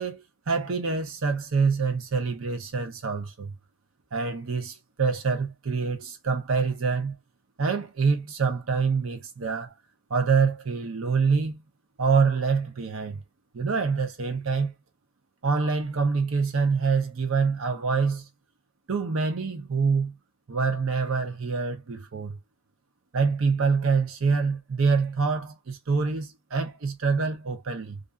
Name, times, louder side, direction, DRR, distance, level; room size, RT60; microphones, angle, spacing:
voice 1, 0.0-3.5 4.1-7.2 7.6-9.7 10.1-11.6 12.0-13.2 13.5-14.7 15.4-18.2 18.9-20.2 20.5-22.4 23.1-28.0, right 5 dB, 85° right, 0.7 m, -26 dB
2.5 x 2.4 x 2.3 m
head